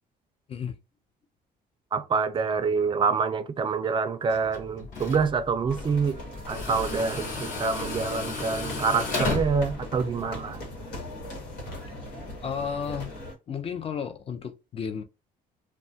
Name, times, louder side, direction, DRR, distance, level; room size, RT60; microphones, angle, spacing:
voice 1, 1.9-6.2 6.5-10.6, right 5 dB, 30° right, 0.4 m, -26 dB
Tools, 4.3-10.6, left 3 dB, 50° left, 1.0 m, -34 dB
sound 1, 5.7-13.3, left 1 dB, 85° left, 1.2 m, -39 dB
voice 2, 12.4-13.1 13.5-15.0, left 7 dB, 35° left, 0.5 m, -33 dB
2.2 x 2.1 x 2.6 m
cardioid pair, 110°, 17 cm